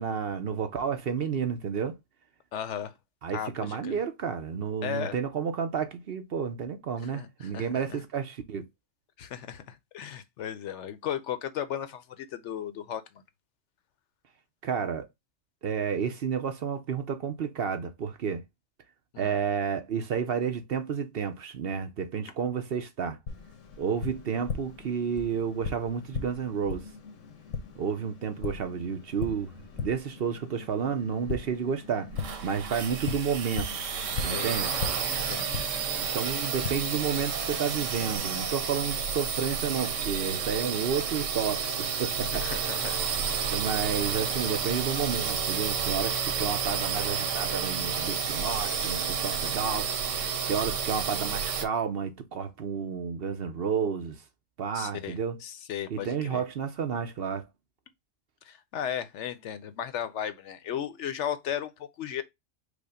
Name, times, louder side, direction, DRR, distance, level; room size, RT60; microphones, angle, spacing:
voice 1, 0.0-2.0 3.2-8.7 14.6-15.1 15.6-18.4 19.2-23.2 23.8-26.9 27.8-29.5 29.8-32.1 32.4-33.7 34.2-34.7 36.1-42.4 43.5-49.9 50.5-54.2 54.6-55.4 55.9-57.4, right 6 dB, 55° right, 0.8 m, -31 dB
voice 2, 2.5-2.9 3.3-4.0 4.8-5.2 7.0-8.0 9.2-13.2 19.1-19.3 34.3-34.5 35.0-35.6 42.2-43.0 54.7-56.4 58.4-62.2, left 9 dB, 70° left, 0.9 m, -36 dB
Tap, 23.3-38.2, left 5 dB, 90° left, 1.2 m, -39 dB
sound 1, 32.1-51.6, right 6 dB, 85° right, 1.1 m, -31 dB
5.1 x 2.1 x 4.8 m
omnidirectional pair, 1.3 m